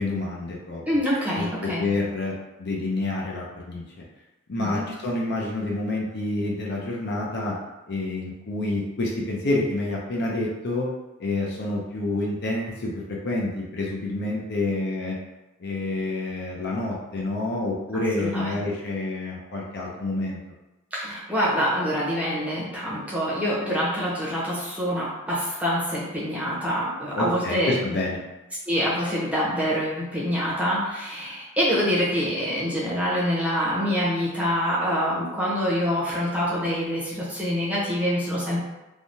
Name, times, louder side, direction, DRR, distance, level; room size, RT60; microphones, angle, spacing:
voice 1, 0.0-0.8 1.1-2.3 2.6-3.8 4.5-7.6 7.9-10.9 11.2-15.2 15.6-20.4 27.2-28.2, left 2 dB, 50° left, -3 dB, 0.6 m, -28 dB
voice 2, 0.9-1.8 4.6-4.8 18.2-18.6 20.9-28.0 28.7-38.6, equal, 5° right, -7 dB, 0.8 m, -26 dB
3.4 x 2.2 x 2.7 m, 1.0 s
head